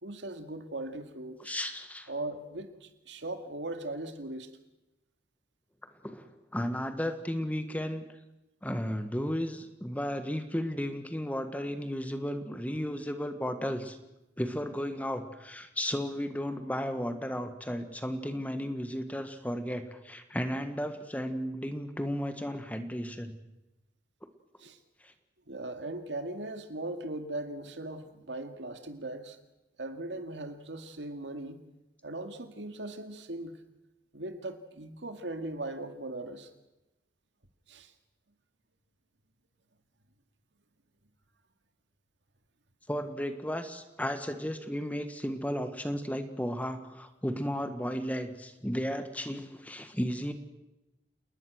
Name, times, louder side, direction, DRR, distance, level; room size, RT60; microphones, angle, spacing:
voice 1, 0.0-1.5 2.1-4.5 24.6-24.8 25.5-29.4 29.8-31.6 32.0-33.5 34.1-36.5 37.7-37.9, right 2 dB, 90° right, 7 dB, 2.2 m, -39 dB
voice 2, 1.4-2.1 6.0-8.0 8.6-14.0 14.4-23.3 25.0-25.1 42.9-50.3, equal, 10° left, 8 dB, 1.5 m, -34 dB
28.5 x 20.0 x 6.4 m, 0.97 s
head